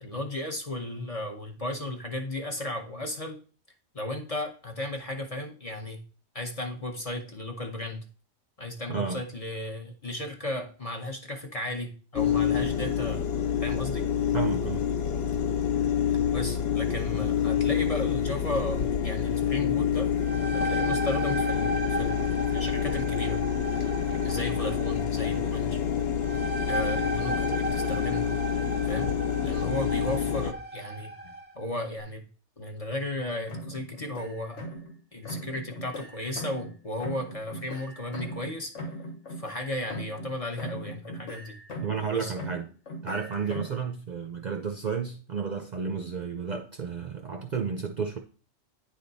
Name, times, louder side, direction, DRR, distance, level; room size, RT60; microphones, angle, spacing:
voice 1, 0.0-3.4 3.9-6.0 6.3-8.0 8.6-13.3 13.6-14.1 16.3-20.1 20.5-23.4 24.2-25.8 26.7-28.3 28.8-29.1 29.4-32.2 32.6-34.6 35.1-38.7 39.3-41.6 42.1-42.3, left 1 dB, 35° left, 3 dB, 0.7 m, -35 dB
voice 2, 8.9-9.2 14.3-14.8 41.8-42.7 43.0-48.2, right 6 dB, 50° right, 3 dB, 0.6 m, -32 dB
sound 1, 12.2-30.5, left 8 dB, 65° left, 0.8 m, -27 dB
sound 2, 20.0-31.5, right 2 dB, 10° right, 0.8 m, -35 dB
sound 3, 33.5-35.0 35.3-36.8 37.0-40.3 40.6-42.1 42.4-43.8, equal, 80° left, 1.5 m, -40 dB
9.3 x 3.4 x 4.0 m, 0.40 s
omnidirectional pair, 1.2 m